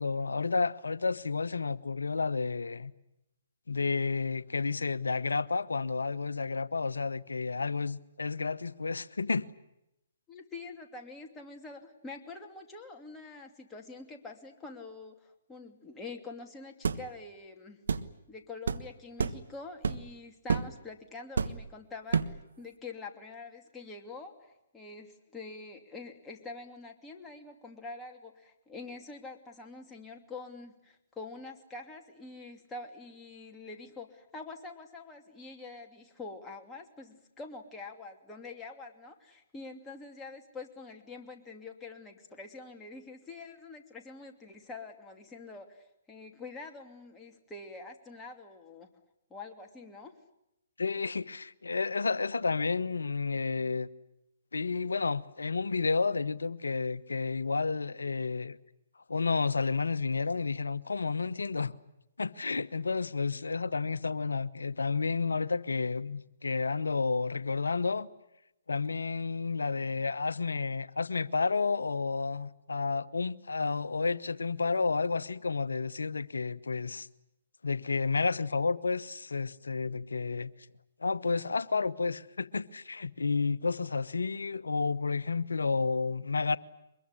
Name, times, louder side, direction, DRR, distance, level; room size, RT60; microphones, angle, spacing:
voice 1, 0.0-2.9 3.7-9.5 50.8-53.9 54.5-58.6 59.1-61.7 62.2-68.1 68.7-77.1 77.6-80.5 81.0-86.6, left 4 dB, 75° left, 1.0 m, -31 dB
voice 2, 10.3-17.8 18.3-48.9 49.3-50.1, left 3 dB, 10° left, 2.9 m, -46 dB
sound 1, 16.8-17.0 17.9-18.1 18.7-18.8 19.2-19.4 19.8-20.1 20.5-20.7 21.4-21.7 22.1-22.4, right 5 dB, 70° right, 1.3 m, -29 dB
24.0 x 22.0 x 9.9 m
figure-of-eight pair, 130°, 0 cm